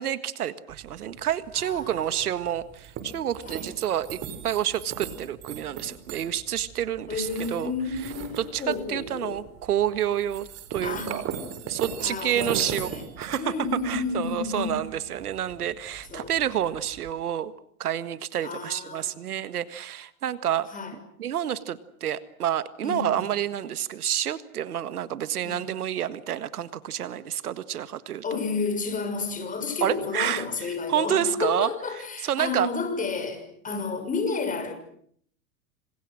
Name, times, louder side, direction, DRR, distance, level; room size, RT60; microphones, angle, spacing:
voice 1, 0.0-7.7 8.0-11.2 11.7-13.5 13.8-17.5 17.8-20.7 21.2-28.2 29.8-30.4 30.9-32.7 33.7-33.8, right 10 dB, 85° right, 14 dB, 1.7 m, -29 dB
sound 1, 0.7-17.1, right 8 dB, 35° right, 4.9 m, -40 dB
voice 2, 1.6-2.0 3.4-3.6 7.1-9.4 10.8-11.2 12.0-13.0 13.3-14.8 16.1-16.3 18.4-19.3 20.7-21.0 22.8-23.3 25.4-25.8 28.2-34.7, left 4 dB, 20° left, 8 dB, 6.2 m, -31 dB
27.5 x 27.0 x 6.4 m, 0.63 s
hypercardioid pair, 125°, 43 cm